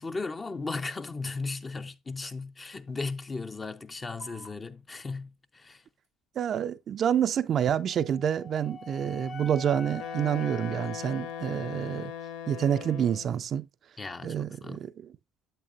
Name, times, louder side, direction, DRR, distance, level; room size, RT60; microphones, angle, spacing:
voice 1, 0.0-5.8 14.0-14.8, left 3 dB, 30° left, 0.6 m, -36 dB
sound 1, 4.2-11.2, right 2 dB, 90° left, 2.7 m, -61 dB
voice 2, 6.4-12.1 12.5-13.7 14.2-15.1, right 9 dB, 50° right, 0.4 m, -28 dB
Wind instrument woodwind instrument, 7.9-12.1, left 4 dB, 45° left, 2.6 m, -44 dB
Wind instrument woodwind instrument 2, 10.0-13.4, left 9 dB, 70° left, 0.5 m, -40 dB
8.7 x 8.2 x 2.5 m
hypercardioid pair, 55°, 0 cm